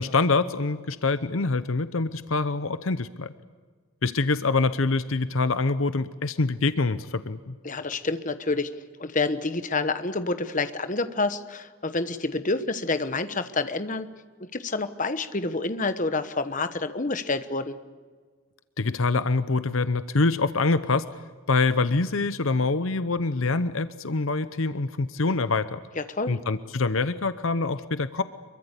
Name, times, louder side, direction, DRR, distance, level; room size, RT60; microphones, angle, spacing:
voice 1, 0.0-3.3 4.0-7.5 18.8-21.0 21.5-25.8 26.3-28.2, left 3 dB, 65° left, 13 dB, 0.8 m, -25 dB
voice 2, 7.6-8.7 9.0-14.1 14.5-17.8 26.0-26.4, left 3 dB, 35° left, 11 dB, 1.1 m, -28 dB
25.5 x 23.0 x 8.3 m, 1.5 s
head